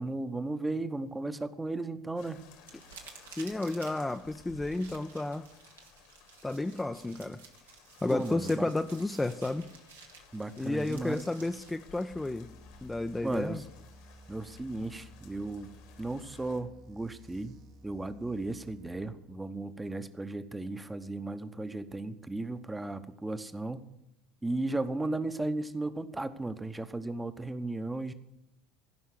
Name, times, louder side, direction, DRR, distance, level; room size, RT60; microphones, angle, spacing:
voice 1, 0.0-2.4 8.1-8.7 10.3-11.2 13.2-13.6 14.3-15.7 16.0-17.6 17.8-23.9 24.4-28.1, right 2 dB, 10° right, 11 dB, 1.0 m, -35 dB
sound 1, 2.2-16.6, left 6 dB, 60° left, 1.9 m, -57 dB
sound 2, 2.6-11.7, right 5 dB, 75° right, 1.6 m, -53 dB
voice 2, 3.3-5.5 6.4-7.4 8.0-9.7 10.6-12.5 12.8-13.6, left 2 dB, 10° left, 6 dB, 0.6 m, -32 dB
sound 3, 12.1-19.0, equal, 50° right, 1.3 m, -54 dB
16.0 x 5.7 x 9.8 m, 0.87 s
figure-of-eight pair, 70°, 0 cm